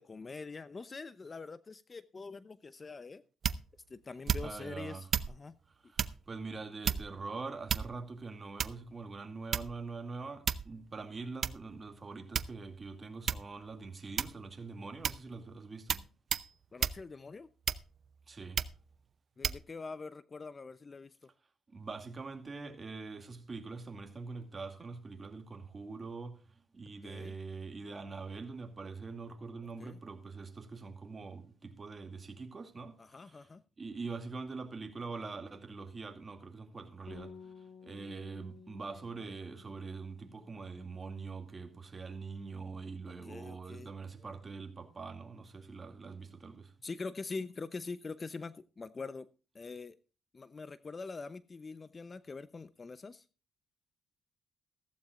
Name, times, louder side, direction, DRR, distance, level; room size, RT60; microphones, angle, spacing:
voice 1, 0.0-3.2 3.9-5.6 16.7-17.5 19.4-21.3 27.0-27.3 29.8-30.0 33.0-33.6 43.1-43.9 46.8-49.3 49.5-50.0 50.3-53.2, left 4 dB, 30° left, 0.7 m, -44 dB
sound 1, 3.4-3.8 4.3-4.7 5.1-5.4 6.0-6.2 6.8-7.2 7.7-8.1 8.6-8.9 9.5-9.9 10.5-10.8 11.4-11.6 12.3-12.8 13.3-13.5 14.2-14.5 15.0-15.3 15.9-16.1 16.3-16.5 16.8-17.0 17.7-18.1 18.6-18.8 19.4-19.6, right 7 dB, 55° right, 0.6 m, -33 dB
voice 2, 4.4-5.0 5.8-16.0 18.3-18.6 21.7-26.4 26.7-33.5 33.8-37.5 37.8-46.7, right 4 dB, 30° right, 2.3 m, -44 dB
Bass guitar, 37.1-41.8 42.0-43.3, left 5 dB, 80° left, 3.0 m, -56 dB
15.0 x 14.5 x 2.5 m
cardioid pair, 90°, 0 cm